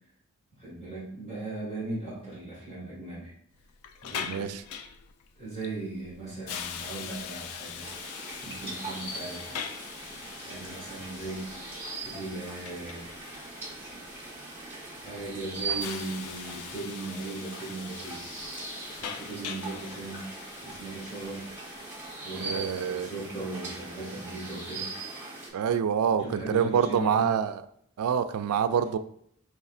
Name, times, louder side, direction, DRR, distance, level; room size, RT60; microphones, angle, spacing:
voice 1, 0.6-3.3 4.0-4.5 5.3-7.9 8.4-9.6 10.4-11.5 12.0-13.1 15.0-18.3 18.9-20.3 20.6-21.5 22.2-24.9 26.1-27.3, right 2 dB, 25° left, -8 dB, 1.6 m, -38 dB
Hiss, 3.5-22.2, left 7 dB, 90° left, 0.4 m, -43 dB
voice 2, 4.2-4.6 22.3-23.1 25.5-27.6 28.0-29.0, right 7 dB, 85° right, 11 dB, 0.3 m, -26 dB
sound 1, 7.8-25.5, right 3 dB, 10° right, 1.0 m, -40 dB
5.3 x 3.2 x 2.4 m, 0.68 s
head